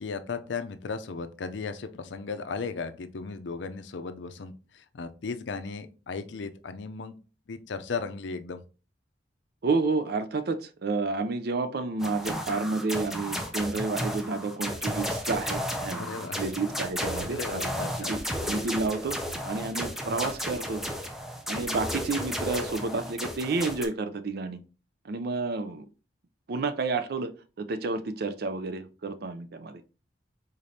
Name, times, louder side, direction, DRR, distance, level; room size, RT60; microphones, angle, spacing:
voice 1, 0.0-7.2 7.5-8.6 16.0-16.4 17.3-18.1, left 4 dB, 70° left, 10 dB, 0.5 m, -36 dB
voice 2, 9.6-19.2 19.4-20.8 21.5-24.6 25.0-25.9 26.5-27.3 27.6-29.8, right 3 dB, 55° right, 11 dB, 0.5 m, -30 dB
sound 1, 12.0-23.9, equal, ahead, 0.6 m, -33 dB
5.1 x 3.9 x 2.7 m, 0.34 s
head